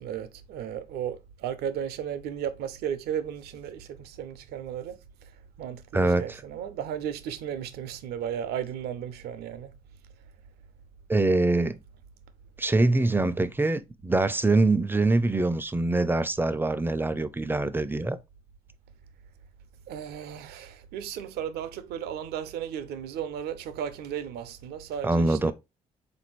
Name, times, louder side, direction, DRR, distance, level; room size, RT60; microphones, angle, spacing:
voice 1, 0.0-5.3 5.6-9.7 19.9-25.5, right 9 dB, 80° right, 0.5 m, -35 dB
voice 2, 5.9-6.2 11.1-11.8 12.6-18.2 25.0-25.5, right 2 dB, 15° right, 0.4 m, -24 dB
3.9 x 2.6 x 3.0 m
supercardioid pair, 55°, 16 cm